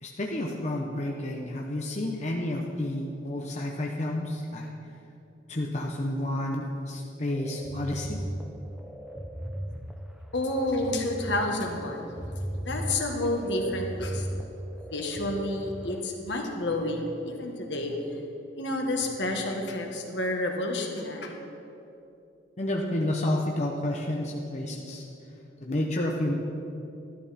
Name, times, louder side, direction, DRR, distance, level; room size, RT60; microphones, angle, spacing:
voice 1, 0.0-4.7 5.5-8.2 22.6-25.0 25.6-26.3, left 1 dB, 35° left, -1 dB, 0.9 m, -30 dB
sound 1, 7.3-15.9, equal, 5° right, 0.7 m, -37 dB
voice 2, 10.3-12.0 12.6-14.3 14.9-18.0 18.5-21.4, left 1 dB, 70° left, 1 dB, 1.6 m, -30 dB
13.5 x 12.0 x 4.3 m, 2.8 s
head